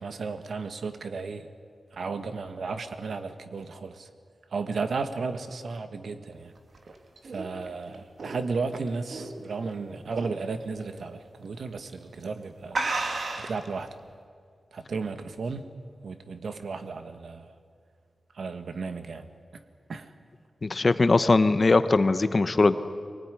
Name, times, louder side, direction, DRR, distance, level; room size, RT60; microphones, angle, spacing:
voice 1, 0.0-1.5 1.9-4.1 4.5-6.5 7.2-12.8 13.4-13.9 14.7-15.7 16.0-17.5 18.3-19.3 19.5-19.6 19.9-20.1, right 4 dB, 80° right, 9 dB, 1.5 m, -34 dB
sound 1, 6.6-9.7 10.1-10.4 10.8-10.9 11.7-11.9 12.2-12.3 12.7-13.7, right 3 dB, 65° right, 2.4 m, -32 dB
voice 2, 20.6-22.8, left 3 dB, 40° left, 12 dB, 0.9 m, -21 dB
24.0 x 18.5 x 9.9 m, 2.1 s
wide cardioid pair, 135°, 0 cm